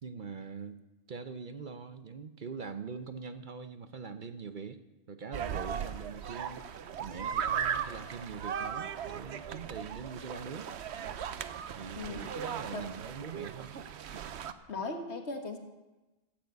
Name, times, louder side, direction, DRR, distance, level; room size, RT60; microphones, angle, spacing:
voice 1, 0.0-0.8 1.1-4.8 5.1-6.6 7.0-10.7 11.7-13.8, right 5 dB, 50° right, 10 dB, 0.8 m, -43 dB
sound 1, 5.3-14.5, right 8 dB, 75° right, 1.0 m, -37 dB
voice 2, 12.0-12.5 12.7-12.9 14.7-15.6, left 3 dB, 75° left, 5 dB, 1.9 m, -38 dB
14.5 x 9.1 x 8.2 m, 1.1 s
omnidirectional pair, 1.1 m